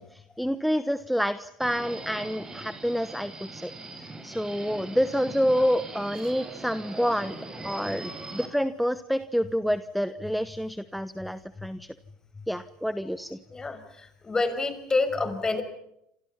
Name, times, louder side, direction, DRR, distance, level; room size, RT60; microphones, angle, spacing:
voice 1, 0.0-3.7 4.0-7.4 7.6-11.9 12.5-13.4, equal, ahead, 14 dB, 1.2 m, -28 dB
Subway metro underground, 1.6-8.5, right 2 dB, 20° right, 7.0 m, -41 dB
voice 2, 13.5-15.6, left 3 dB, 20° left, 10 dB, 5.9 m, -28 dB
28.5 x 27.5 x 5.7 m, 0.78 s
hypercardioid pair, 75°, 3 cm